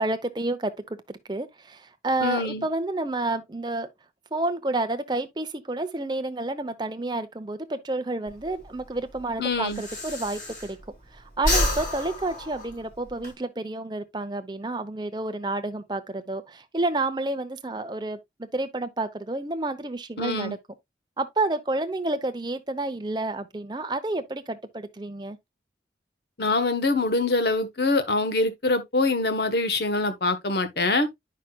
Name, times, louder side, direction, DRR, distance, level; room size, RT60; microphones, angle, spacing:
voice 1, 0.0-3.9 4.3-10.8 11.1-20.6 21.2-25.4, right 2 dB, 25° right, 0.7 m, -30 dB
voice 2, 2.2-2.7 9.4-9.8 20.2-20.5 26.4-31.1, left 2 dB, 60° left, 1.2 m, -24 dB
Breathing, 8.3-11.0 11.3-13.3, left 1 dB, 40° left, 3.9 m, -29 dB
9.6 x 5.8 x 2.2 m
head